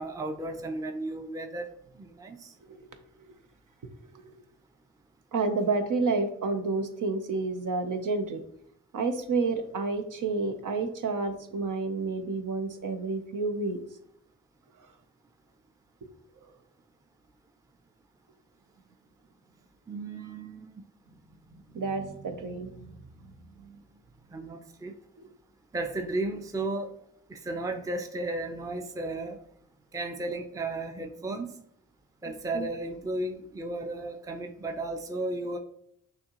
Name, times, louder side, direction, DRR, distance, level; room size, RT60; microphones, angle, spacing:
voice 1, 0.0-1.7 2.0-2.5 19.9-20.7 24.3-24.9 25.7-26.9 27.3-29.4 29.9-31.6 32.2-35.6, right 2 dB, 10° right, 5 dB, 0.5 m, -34 dB
voice 2, 5.3-8.4 8.9-13.8 21.7-22.9 23.6-23.8 32.5-32.7, right 3 dB, 75° right, 6 dB, 0.7 m, -30 dB
6.3 x 2.8 x 2.9 m, 0.70 s
cardioid pair, 50°, 32 cm